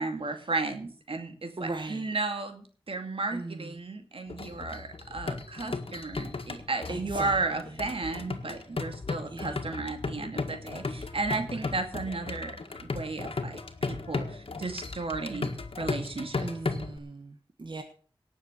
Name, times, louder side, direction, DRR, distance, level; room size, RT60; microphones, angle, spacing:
voice 1, 0.0-13.6 13.9-15.5 15.8-16.5, right 3 dB, 85° right, 6 dB, 2.4 m, -34 dB
voice 2, 1.6-2.1 3.3-3.7 6.9-7.4 9.3-9.6 11.5-11.7 16.4-17.8, right 2 dB, 60° right, 6 dB, 1.4 m, -38 dB
sound 1, 4.3-17.0, left 3 dB, 85° left, 1.7 m, -36 dB
18.0 x 7.2 x 6.7 m, 0.44 s
wide cardioid pair, 75°, 9 cm